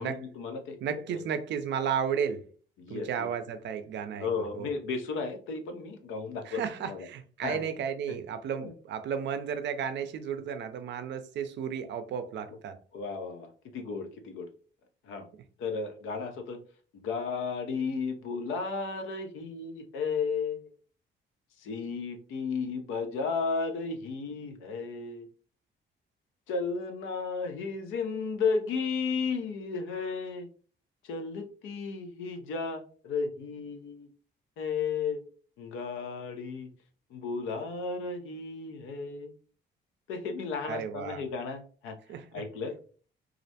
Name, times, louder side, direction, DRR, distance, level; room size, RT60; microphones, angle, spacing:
voice 1, 0.0-0.8 1.1-1.2 2.8-3.3 4.1-7.1 7.4-7.6 8.1-8.2 8.6-8.7 12.9-14.5 15.0-15.3 15.6-16.6 16.9-20.7 21.6-25.3 26.5-30.5 31.0-34.1 34.6-35.2 35.6-36.7 37.1-39.3 40.1-42.8, left 5 dB, 90° left, 0.5 m, -34 dB
voice 2, 0.8-2.5 2.9-4.3 4.5-4.7 6.5-12.8 40.7-41.2 42.1-42.4, right 7 dB, 65° right, 0.4 m, -33 dB
2.4 x 2.1 x 2.7 m
cardioid pair, 90°, 20 cm